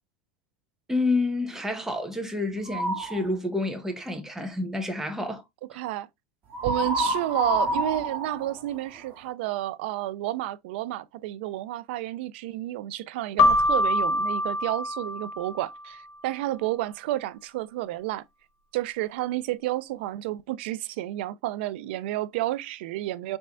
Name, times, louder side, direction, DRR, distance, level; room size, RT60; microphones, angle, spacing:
voice 1, 0.9-5.4 5.7-5.8, left 2 dB, 5° right, 0.9 m, -29 dB
sound 1, 2.7-3.2 6.5-9.3, right 1 dB, 40° right, 1.8 m, -28 dB
voice 2, 5.7-6.1 6.6-18.2 18.7-23.4, right 15 dB, 80° right, 0.4 m, -31 dB
Keyboard (musical), 13.4-15.9, left 2 dB, 50° left, 0.6 m, -24 dB
4.3 x 3.2 x 2.5 m
supercardioid pair, 125°, 6 cm